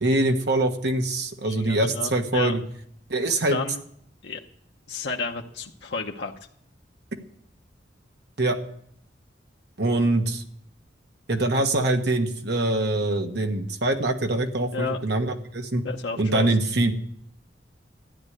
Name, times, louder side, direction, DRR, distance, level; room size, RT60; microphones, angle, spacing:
voice 1, 0.0-2.6 3.1-3.6 8.4-8.6 9.8-10.4 11.3-15.8 16.2-16.9, right 2 dB, 65° right, 4 dB, 1.5 m, -24 dB
voice 2, 1.4-2.6 3.5-3.8 4.2-4.4 4.9-6.3 14.7-15.0 15.8-16.5, left 4 dB, 75° left, 1 dB, 1.0 m, -31 dB
13.5 x 9.9 x 6.6 m, 0.69 s
head